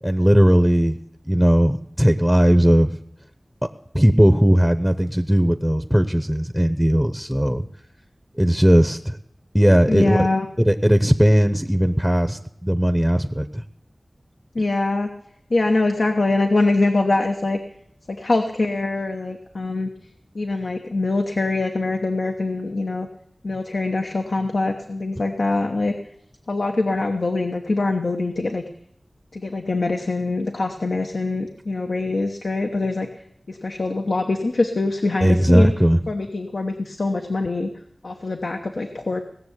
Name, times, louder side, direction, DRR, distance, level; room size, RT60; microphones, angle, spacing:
voice 1, 0.0-1.0 1.3-3.0 3.6-3.7 3.9-7.6 8.4-9.2 9.5-10.3 10.6-13.6 35.2-36.0, equal, 5° right, 9 dB, 0.7 m, -17 dB
voice 2, 9.9-10.5 14.5-15.1 15.5-17.6 18.1-19.9 20.3-23.1 23.4-25.9 26.5-28.6 29.3-33.1 33.5-35.7 36.1-37.7 38.0-39.2, left 2 dB, 80° left, 4 dB, 1.0 m, -23 dB
18.0 x 6.9 x 8.1 m, 0.74 s
wide cardioid pair, 45°, 0 cm